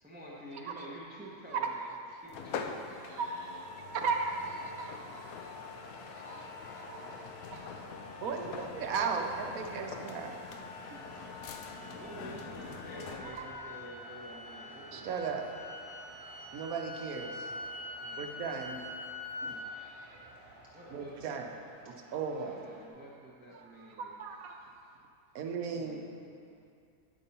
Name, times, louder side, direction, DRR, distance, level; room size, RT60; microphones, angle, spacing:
voice 1, 0.0-1.9 2.2-2.7 6.6-7.9 11.9-15.2 18.0-18.3 20.7-21.3 22.4-24.2 25.7-26.4, right 1 dB, 10° right, -5 dB, 0.7 m, -49 dB
voice 2, 1.5-2.2 3.1-3.3 3.7-5.6 6.2-7.9 8.2-10.3 13.2-13.6 14.9-15.4 16.5-17.5 18.2-18.8 20.9-21.5 21.9-22.6 23.5-24.8 25.3-26.0, right 5 dB, 90° right, 3 dB, 1.2 m, -37 dB
sound 1, 2.3-13.6, left 6 dB, 85° left, 1.0 m, -44 dB
voice 3, 3.0-3.9 6.2-6.5 8.4-10.0 10.9-11.5 19.4-20.4, right 2 dB, 65° right, -3 dB, 1.0 m, -55 dB
sound 2, 4.1-22.9, right 1 dB, 40° right, 1.3 m, -54 dB
sound 3, 10.5-19.7, left 2 dB, 55° left, 1.6 m, -45 dB
9.2 x 5.3 x 4.2 m, 2.4 s
omnidirectional pair, 1.4 m